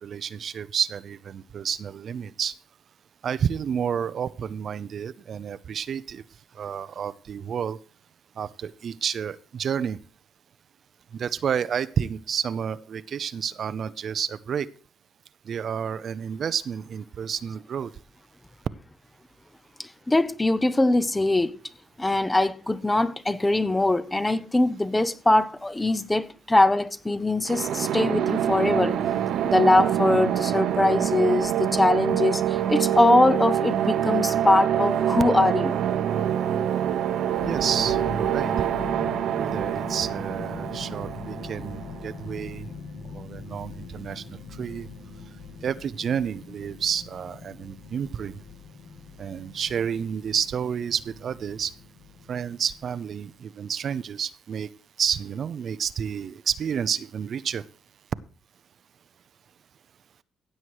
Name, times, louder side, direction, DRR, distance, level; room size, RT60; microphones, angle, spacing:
voice 1, 0.0-2.5 3.2-6.2 6.5-7.8 8.4-10.0 11.1-14.7 15.5-17.9 37.4-38.7 39.3-42.7 43.1-44.9 45.6-48.3 49.2-51.7 52.3-54.7 55.0-57.6, right 7 dB, 55° right, 0.6 m, -30 dB
voice 2, 20.1-21.5 22.0-29.0 29.4-32.4 32.7-35.7, left 2 dB, 15° left, 0.8 m, -22 dB
sound 1, 27.4-42.2, right 10 dB, 80° right, 1.1 m, -26 dB
sound 2, 37.4-53.3, left 4 dB, 60° left, 1.9 m, -41 dB
15.5 x 7.8 x 4.7 m
cardioid pair, 90°, 0 cm